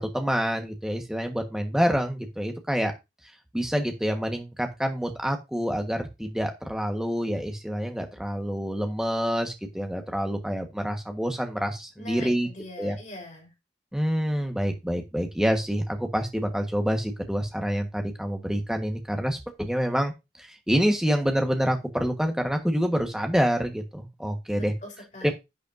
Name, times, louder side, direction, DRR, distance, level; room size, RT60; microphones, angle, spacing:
voice 1, 0.0-2.9 3.5-12.5 12.8-12.9 13.9-20.1 20.4-24.7 25.2-25.3, equal, 5° right, 4 dB, 1.4 m, -27 dB
voice 2, 12.0-13.5 24.5-25.3, left 1 dB, 40° left, 1 dB, 4.1 m, -42 dB
10.5 x 8.4 x 2.7 m, 0.23 s
head